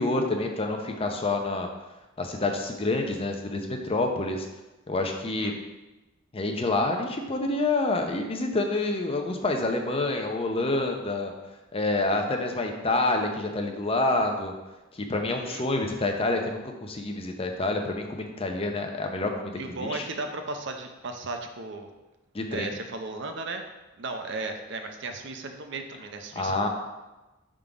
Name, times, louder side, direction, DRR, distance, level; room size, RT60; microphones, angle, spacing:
voice 1, 0.0-1.7 2.2-4.5 4.9-5.5 6.3-11.3 11.7-14.5 14.9-20.1 22.3-22.7 26.4-26.7, left 2 dB, 30° left, 3 dB, 0.6 m, -27 dB
voice 2, 15.3-15.6 19.5-21.9 22.5-23.6 24.0-26.7, right 3 dB, 60° right, 5 dB, 0.6 m, -35 dB
5.4 x 3.7 x 4.8 m, 1.1 s
head